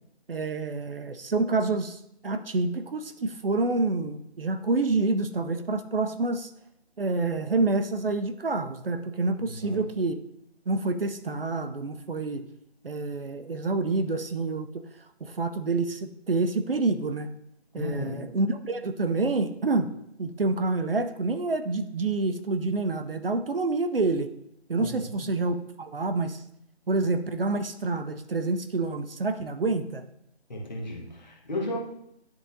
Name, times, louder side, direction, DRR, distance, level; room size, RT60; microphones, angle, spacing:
voice 1, 0.3-6.5 7.0-10.2 10.7-12.5 12.8-14.8 15.2-17.3 17.7-19.9 20.2-24.3 24.7-26.4 26.9-30.0, right 3 dB, 60° right, 9 dB, 0.5 m, -27 dB
voice 2, 9.4-9.8 17.7-18.3 24.8-25.1 30.5-31.8, left 1 dB, 40° left, -2 dB, 1.5 m, -34 dB
10.5 x 3.7 x 2.6 m, 0.76 s
figure-of-eight pair, 175°, 33 cm